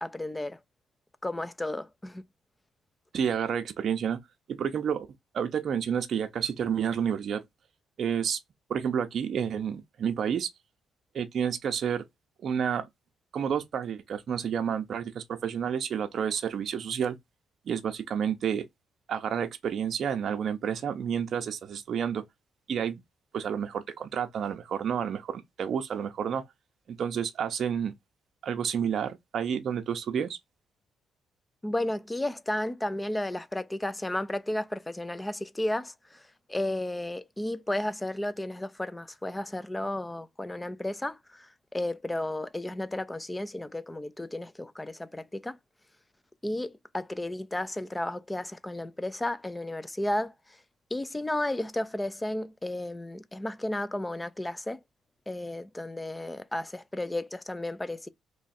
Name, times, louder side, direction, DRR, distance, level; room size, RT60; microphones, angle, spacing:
voice 1, 0.0-0.6 1.2-2.2 31.6-36.2 36.5-45.6 46.4-50.3 50.9-54.8 55.3-58.1, left 1 dB, 10° left, 0.4 m, -33 dB
voice 2, 3.1-4.2 4.5-5.1 5.3-7.4 8.0-8.4 8.7-10.5 11.1-12.0 12.4-12.9 13.3-17.2 17.7-18.6 19.1-22.2 22.7-23.0 23.3-26.4 26.9-27.9 28.4-30.4, right 8 dB, 60° right, 0.6 m, -30 dB
3.0 x 2.4 x 4.1 m
cardioid pair, 90°, 0 cm